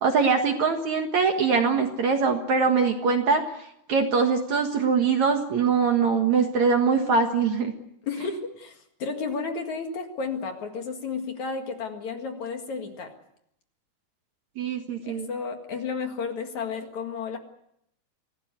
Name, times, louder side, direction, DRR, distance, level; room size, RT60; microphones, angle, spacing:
voice 1, 0.0-3.4 3.9-7.7 14.6-15.3, right 5 dB, 55° right, 5 dB, 2.4 m, -22 dB
voice 2, 8.1-13.1 15.0-17.4, left 5 dB, 50° left, 5 dB, 2.9 m, -32 dB
25.5 x 17.5 x 8.2 m, 0.76 s
omnidirectional pair, 4.6 m